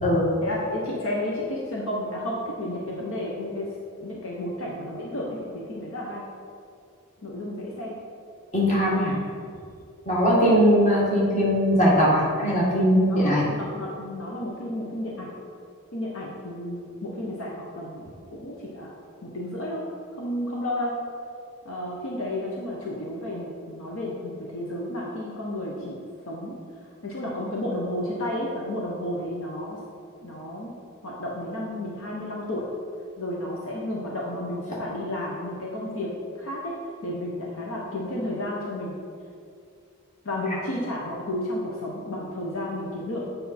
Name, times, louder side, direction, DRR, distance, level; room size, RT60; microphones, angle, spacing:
voice 1, 0.4-3.7 4.0-6.2 7.2-7.9 13.1-15.3 15.9-19.0 19.2-19.8 20.2-21.0 21.6-26.0 26.2-26.6 27.0-29.8 30.2-30.7 31.0-32.7 33.2-36.1 36.4-36.8 37.0-38.9 40.2-43.2, left 1 dB, 65° left, -3 dB, 1.0 m, -32 dB
voice 2, 8.5-9.2 10.1-13.4, equal, 35° left, -5 dB, 1.9 m, -20 dB
8.2 x 5.3 x 4.3 m, 2.3 s
head